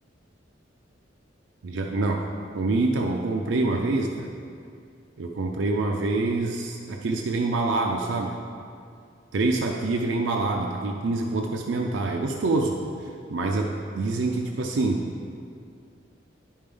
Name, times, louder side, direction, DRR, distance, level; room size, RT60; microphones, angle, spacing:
voice 1, 1.6-2.3 2.5-4.3 5.2-8.4 9.3-15.0, right 2 dB, 70° right, 1 dB, 0.5 m, -26 dB
10.5 x 5.3 x 3.4 m, 2.4 s
head